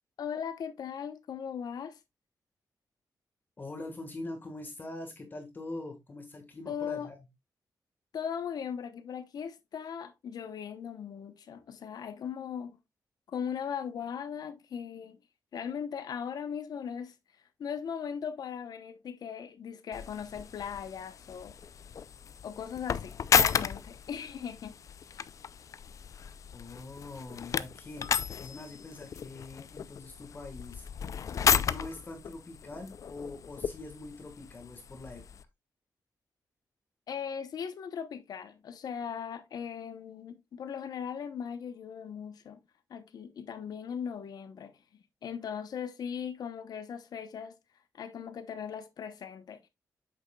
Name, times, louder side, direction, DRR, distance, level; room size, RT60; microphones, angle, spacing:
voice 1, 0.2-2.0 6.7-7.1 8.1-12.8 13.3-15.2 15.5-17.1 17.6-21.6 22.4-24.8 25.1-25.2 37.1-42.6 42.9-47.6 47.9-49.6, left 7 dB, 75° left, 0.9 m, -38 dB
voice 2, 3.6-7.2 26.5-28.1 28.4-30.9 31.6-35.2, left 2 dB, 30° left, 1.6 m, -43 dB
sound 1, 19.9-35.4, left 7 dB, 55° left, 0.4 m, -33 dB
8.3 x 6.5 x 2.3 m
wide cardioid pair, 165°, 7 cm